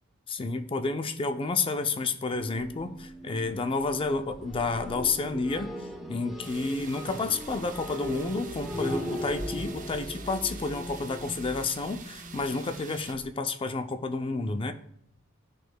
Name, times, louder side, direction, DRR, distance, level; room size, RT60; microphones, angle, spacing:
voice 1, 0.3-5.7 6.1-14.7, left 3 dB, 25° left, 8 dB, 0.4 m, -30 dB
sound 1, 2.3-13.3, equal, ahead, 0.9 m, -39 dB
sound 2, 6.4-13.1, right 6 dB, 40° right, 0.6 m, -47 dB
12.0 x 4.1 x 2.2 m, 0.70 s
head